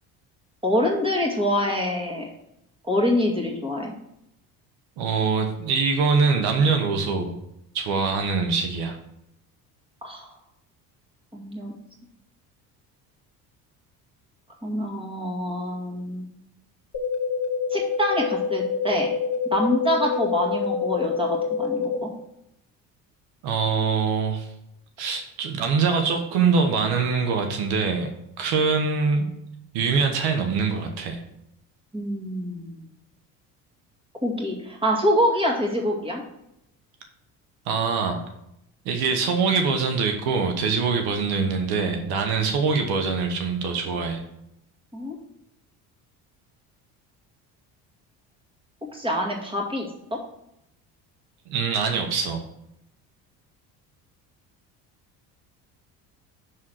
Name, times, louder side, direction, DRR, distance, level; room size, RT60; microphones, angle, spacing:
voice 1, 0.6-2.2 2.8-3.9 10.0-10.3 11.3-11.7 14.6-16.3 17.7-19.1 19.5-22.1 31.9-32.9 34.2-36.2 44.9-45.1 48.9-50.2, equal, 15° right, -1 dB, 1.9 m, -25 dB
voice 2, 5.0-7.3 7.7-9.0 23.4-24.5 25.0-28.1 28.4-29.3 29.7-31.2 37.7-38.2 38.8-44.2 51.5-52.4, right 5 dB, 75° right, 4 dB, 1.0 m, -23 dB
sound 1, 16.9-22.0, left 6 dB, 45° left, 1.5 m, -26 dB
6.3 x 3.8 x 6.2 m, 0.80 s
supercardioid pair, 90°, 38 cm